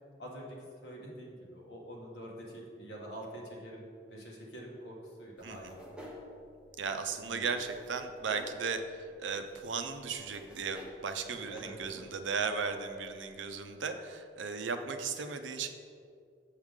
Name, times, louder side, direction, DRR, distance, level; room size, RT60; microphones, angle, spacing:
voice 1, 0.2-6.1 7.3-7.4 11.3-11.8, right 1 dB, 70° left, -3 dB, 1.6 m, -46 dB
sound 1, 5.4-13.8, equal, 5° right, 0.9 m, -53 dB
voice 2, 6.8-8.8 9.2-15.7, right 5 dB, 85° right, 7 dB, 0.5 m, -36 dB
7.3 x 6.5 x 3.6 m, 2.3 s
head